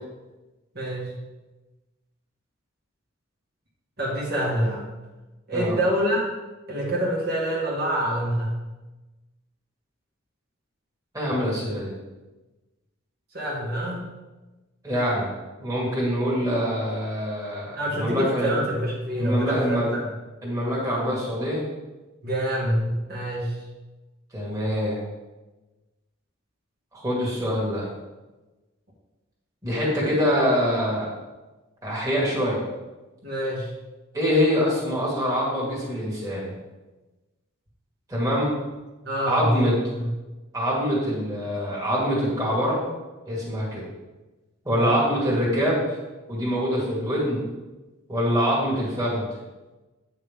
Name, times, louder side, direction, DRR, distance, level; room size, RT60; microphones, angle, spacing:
voice 1, 0.8-1.1 4.0-4.9 5.5-6.3 6.7-8.5 13.3-14.1 17.8-20.1 22.2-23.5 33.2-33.7 39.0-40.1 44.7-45.1, equal, 50° right, -5 dB, 1.9 m, -26 dB
voice 2, 11.1-11.9 14.8-15.3 15.6-18.5 19.1-19.9 20.4-21.6 24.3-25.0 26.9-27.9 29.6-31.1 31.8-32.6 34.1-36.5 38.1-38.6 39.3-39.7 40.5-42.8 43.2-43.8 44.7-45.8 46.3-47.4 48.1-49.3, equal, 15° right, -6 dB, 2.2 m, -24 dB
9.0 x 5.8 x 3.6 m, 1.1 s
head